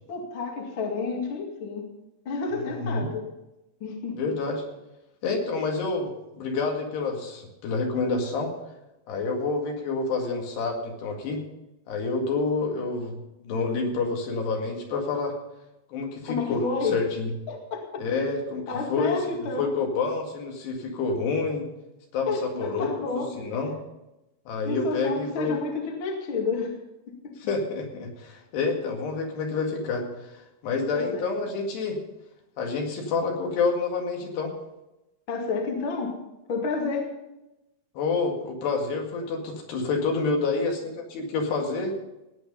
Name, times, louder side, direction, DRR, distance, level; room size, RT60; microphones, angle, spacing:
voice 1, 0.1-1.9 2.3-3.4 3.8-4.3 16.2-17.0 17.5-19.7 22.3-23.3 24.7-26.7 27.1-27.3 30.9-31.3 35.3-36.2 36.5-37.1, left 4 dB, 40° left, 1 dB, 2.1 m, -30 dB
voice 2, 2.5-3.1 4.2-4.6 5.2-8.5 9.1-11.4 11.9-15.4 15.9-17.3 18.0-18.6 18.9-19.2 19.6-21.7 22.1-23.7 24.5-25.6 27.4-32.0 32.6-34.5 38.0-41.9, left 4 dB, 75° left, 1 dB, 4.1 m, -28 dB
17.5 x 9.3 x 5.4 m, 0.94 s
omnidirectional pair, 4.9 m